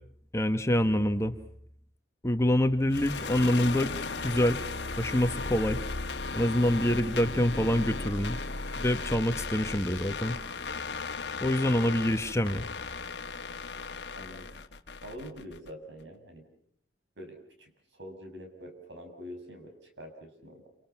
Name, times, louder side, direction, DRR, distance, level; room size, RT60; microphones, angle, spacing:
voice 1, 0.3-1.3 2.2-3.9 4.2-4.6 5.0-5.8 6.3-8.4 8.8-10.3 11.4-12.7, left 1 dB, 15° left, 7 dB, 1.1 m, -26 dB
sound 1, 2.9-15.7, left 4 dB, 65° left, 1.5 m, -36 dB
voice 2, 14.1-14.5 15.0-16.5 17.2-20.7, equal, 75° right, 4 dB, 6.8 m, -45 dB
28.5 x 28.0 x 6.0 m, 0.64 s
head